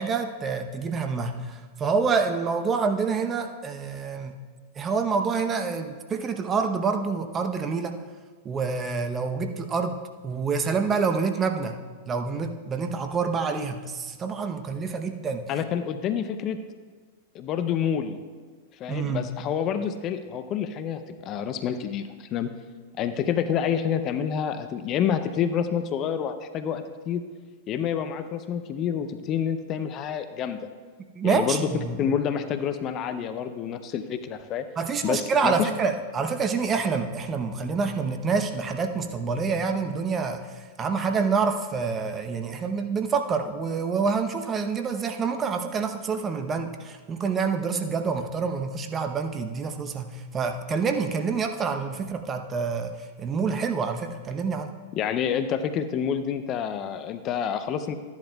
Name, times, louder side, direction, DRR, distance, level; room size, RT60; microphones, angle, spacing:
voice 1, 0.0-4.4 4.8-8.0 8.4-10.0 10.2-11.8 12.1-15.5 18.9-19.3 31.1-32.1 34.8-40.4 40.8-52.9 53.2-54.7, right 5 dB, 25° right, 6 dB, 0.8 m, -27 dB
voice 2, 15.5-16.6 17.3-18.2 18.8-22.5 23.0-27.2 27.7-30.6 31.2-31.7 32.0-34.6 35.0-35.7 55.0-58.0, left 8 dB, 40° left, 10 dB, 0.6 m, -28 dB
13.5 x 10.5 x 2.3 m, 1.5 s
hypercardioid pair, 105°, 0 cm